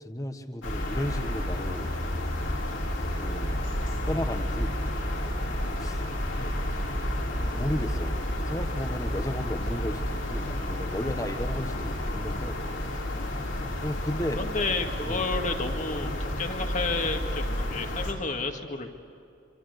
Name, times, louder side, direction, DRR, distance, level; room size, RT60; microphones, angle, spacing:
voice 1, 0.0-1.9 3.2-3.6 4.1-4.8 5.8-6.0 6.3-6.6 7.5-8.2 8.5-12.6 13.8-14.4 15.0-15.3, left 1 dB, 15° left, 8 dB, 1.4 m, -34 dB
sound 1, 0.6-18.1, left 1 dB, 80° left, 4.8 m, -31 dB
voice 2, 14.3-16.1 16.4-18.9, left 3 dB, 40° left, 5 dB, 2.1 m, -31 dB
26.5 x 25.5 x 8.2 m, 2.6 s
head